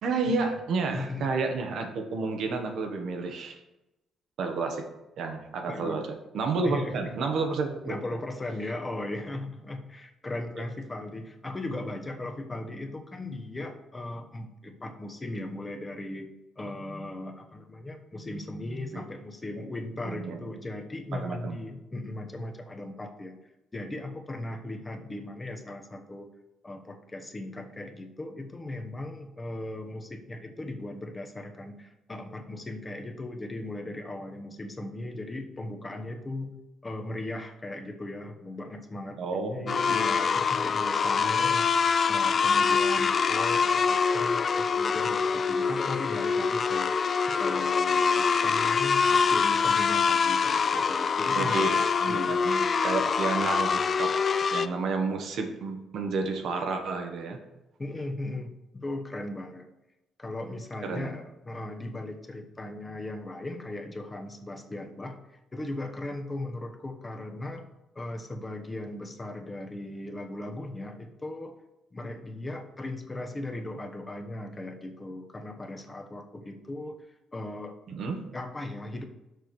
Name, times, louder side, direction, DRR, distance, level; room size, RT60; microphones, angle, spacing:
voice 1, 0.0-3.6 4.4-4.9 5.2-6.0 6.3-8.0 18.9-19.0 20.0-20.4 21.1-21.6 39.2-39.8 51.4-51.7 52.0-54.2 54.5-57.4 60.8-61.1 77.9-78.2, right 4 dB, 70° right, 5 dB, 1.3 m, -30 dB
voice 2, 0.9-1.3 5.7-6.0 6.6-7.1 7.8-16.3 16.6-23.4 23.7-26.3 26.6-36.5 36.8-47.0 47.3-51.7 52.1-52.6 57.8-59.7 60.2-67.7 67.9-71.5 71.9-77.0 77.3-77.7 78.3-79.1, left 2 dB, 25° left, 4 dB, 1.1 m, -37 dB
sound 1, 39.7-54.7, left 5 dB, 45° left, 0.4 m, -25 dB
6.6 x 5.0 x 6.2 m, 0.93 s
cardioid pair, 90°, 0 cm